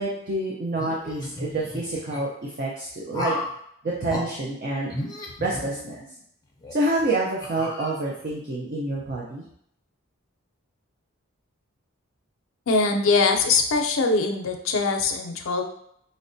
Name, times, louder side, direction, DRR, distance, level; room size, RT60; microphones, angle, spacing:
voice 1, 0.0-3.4 3.8-4.9 5.4-6.0 6.7-9.4, right 2 dB, 45° right, -3 dB, 0.5 m, -27 dB
sound 1, 0.7-2.2 3.1-3.6 4.1-4.3 4.9-6.1 6.6-6.7 7.4-8.3, left 1 dB, 15° left, 0.5 m, -34 dB
voice 2, 12.7-15.6, left 4 dB, 70° left, 4 dB, 0.5 m, -22 dB
5.2 x 2.1 x 2.6 m, 0.72 s
head